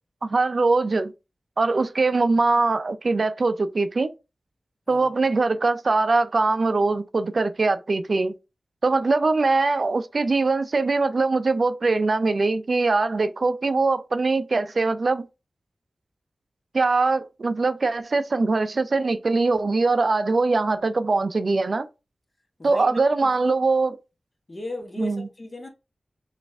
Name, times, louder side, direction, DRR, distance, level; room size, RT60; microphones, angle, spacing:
voice 1, 0.2-1.1 1.6-4.1 4.9-8.3 8.8-15.3 16.7-21.9 22.6-23.9 25.0-25.3, right 3 dB, 60° right, 0.4 m, -22 dB
voice 2, 22.6-23.6 24.5-25.7, left 2 dB, 35° left, 1.3 m, -36 dB
4.0 x 2.5 x 3.4 m
cardioid pair, 50°, 0 cm